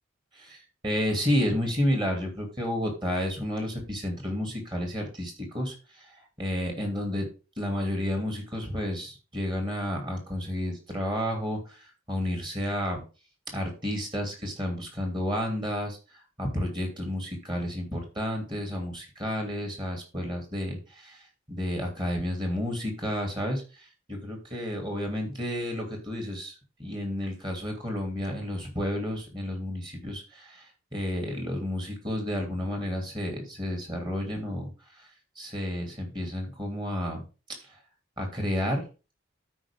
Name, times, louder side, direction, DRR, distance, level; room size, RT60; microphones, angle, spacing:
voice 1, 0.8-5.7 6.4-7.3 7.6-13.0 13.5-16.0 16.4-21.2 21.5-23.6 24.1-30.6 30.9-34.7 35.4-37.2 38.2-38.8, left 1 dB, 25° right, 2 dB, 2.9 m, -31 dB
12.5 x 4.9 x 3.6 m, 0.32 s
head